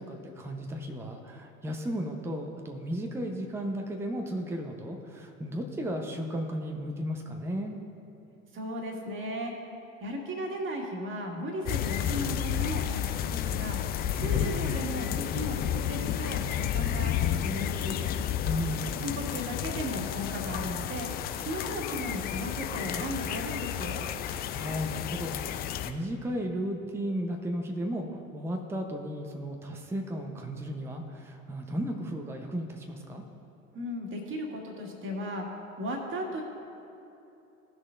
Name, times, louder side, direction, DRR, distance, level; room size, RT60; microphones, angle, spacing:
voice 1, 0.0-7.8 14.2-14.4 18.5-19.0 24.3-33.2, equal, 5° right, 3 dB, 0.8 m, -35 dB
voice 2, 8.5-9.5 10.0-13.8 14.1-18.2 19.0-21.1 21.4-24.0 33.7-36.4, equal, 30° right, 0 dB, 1.9 m, -36 dB
sound 1, 11.7-25.9, left 10 dB, 25° left, 0.3 m, -31 dB
17.5 x 6.3 x 2.5 m, 2.8 s
figure-of-eight pair, 75°, 40 cm